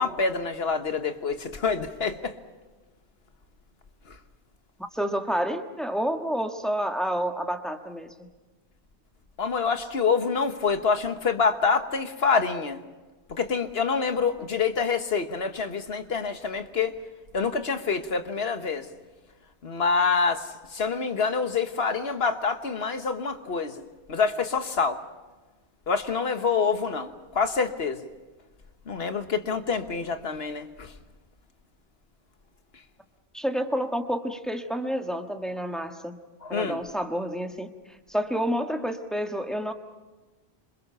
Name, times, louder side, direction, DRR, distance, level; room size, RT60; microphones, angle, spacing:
voice 1, 0.0-2.4 9.4-12.8 13.3-16.9 17.3-18.9 19.6-23.8 24.1-25.0 25.9-28.0 28.9-30.9 36.4-36.8, left 5 dB, 70° left, 8 dB, 1.6 m, -26 dB
voice 2, 4.9-8.3 33.3-36.2 36.5-37.7 38.1-39.7, equal, ahead, 4 dB, 1.6 m, -29 dB
27.0 x 26.5 x 5.7 m, 1.2 s
omnidirectional pair, 1.1 m